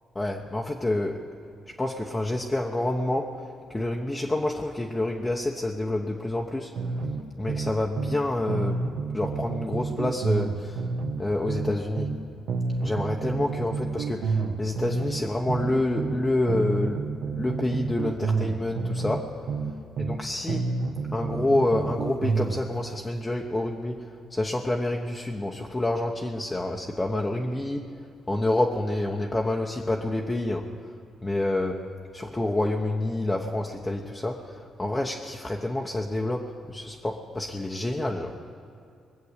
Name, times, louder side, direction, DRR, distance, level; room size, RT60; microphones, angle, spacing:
voice 1, 0.1-1.2 1.8-6.7 7.4-8.8 9.1-10.8 11.2-12.1 12.8-19.4 20.0-20.8 21.1-28.0 28.3-30.7 31.2-31.9 32.1-38.4, left 1 dB, 15° left, 0 dB, 1.0 m, -28 dB
sound 1, 6.8-8.2 8.5-12.2 12.5-16.2 16.5-20.2 20.5-22.6, right 4 dB, 75° right, 1.3 m, -29 dB
21.0 x 7.8 x 8.2 m, 2.5 s
cardioid pair, 90°, 0 cm